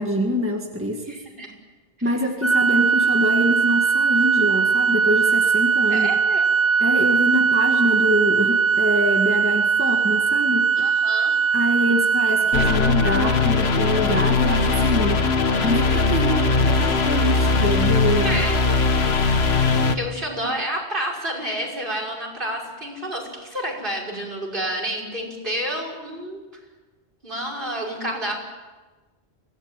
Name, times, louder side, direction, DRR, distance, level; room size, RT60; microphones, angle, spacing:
voice 1, 0.0-1.2 2.0-6.1 6.8-10.8 11.5-15.3 15.6-18.3, equal, 10° right, 2 dB, 1.9 m, -25 dB
voice 2, 1.1-1.5 5.9-6.4 10.8-11.3 16.8-17.0 18.2-18.6 19.9-26.4 27.2-28.4, right 1 dB, 50° right, 0 dB, 6.2 m, -29 dB
Organ, 2.4-13.5, right 6 dB, 15° left, 1.0 m, -20 dB
sound 1, 12.5-20.0, left 3 dB, 70° left, 1.6 m, -20 dB
25.0 x 18.0 x 9.1 m, 1.2 s
omnidirectional pair, 1.1 m